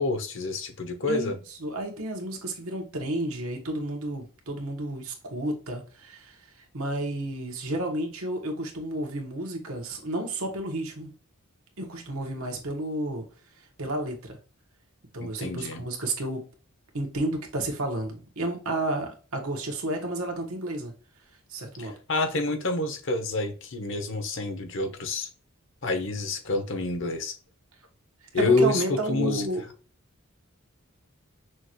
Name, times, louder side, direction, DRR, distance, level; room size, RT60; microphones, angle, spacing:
voice 1, 0.0-1.4 15.2-15.8 21.8-25.3 25.8-27.3 28.3-29.4, left 2 dB, 60° left, 6 dB, 1.0 m, -28 dB
voice 2, 1.6-6.4 6.7-11.1 11.8-13.3 13.8-14.4 15.1-16.4 16.9-20.9 21.5-21.9 28.3-29.6, right 1 dB, 85° right, 2 dB, 1.4 m, -31 dB
6.1 x 2.6 x 3.0 m, 0.36 s
head